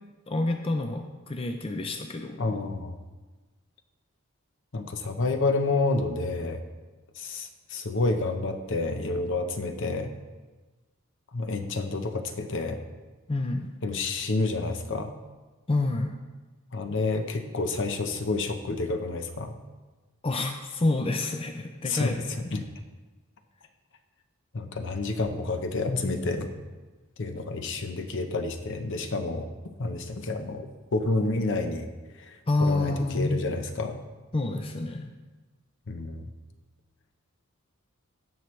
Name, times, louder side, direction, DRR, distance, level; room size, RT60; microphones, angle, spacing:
voice 1, 0.3-2.6 13.3-13.7 15.7-16.1 20.2-22.6 25.9-26.1 32.5-33.4 34.3-35.1, left 2 dB, 25° left, 5 dB, 0.5 m, -28 dB
voice 2, 2.4-3.0 4.7-6.6 7.2-10.1 11.3-12.8 13.8-15.1 16.7-19.5 21.9-22.1 22.5-22.6 24.5-26.5 27.2-29.5 29.8-31.9 32.2-34.0 35.9-36.2, left 3 dB, 60° left, 6 dB, 0.8 m, -29 dB
16.5 x 6.0 x 3.2 m, 1.2 s
head